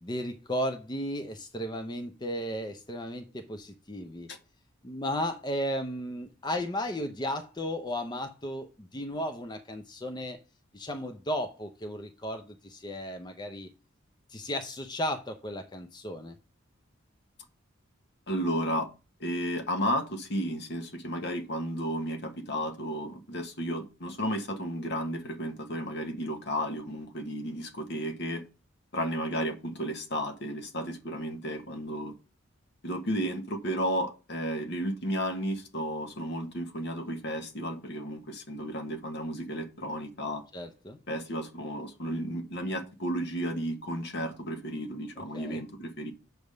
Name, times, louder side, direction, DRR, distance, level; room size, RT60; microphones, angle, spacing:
voice 1, 0.0-4.3 4.8-10.4 10.7-13.7 14.3-16.4 40.5-41.0 45.3-45.6, equal, 20° left, 0.5 m, -34 dB
voice 2, 18.3-18.9 19.2-28.4 28.9-32.1 32.8-40.4 41.1-46.1, equal, 55° left, 1.0 m, -33 dB
7.9 x 3.5 x 6.4 m
head